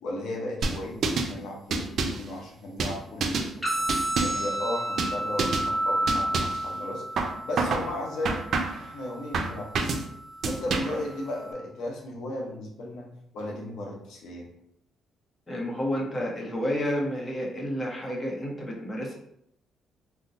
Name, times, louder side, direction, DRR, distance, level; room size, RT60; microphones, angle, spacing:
voice 1, 0.0-3.8 4.2-7.0 7.4-8.4 8.8-10.0 10.4-13.1 13.3-14.5, left 1 dB, 80° left, -1 dB, 0.8 m, -35 dB
sound 1, 0.6-1.3 1.7-2.3 2.8-3.5 3.9-4.5 5.0-5.1 5.4-5.7 6.1-6.6 7.2-7.9 8.2-8.9 9.3-10.0 10.4-11.0, right 4 dB, 60° right, 0.4 m, -28 dB
sound 2, 3.6-11.6, right 1 dB, ahead, 1.3 m, -32 dB
voice 2, 15.5-19.1, equal, 25° left, -1 dB, 0.9 m, -30 dB
2.7 x 2.1 x 4.0 m, 0.75 s
cardioid pair, 90°, 0 cm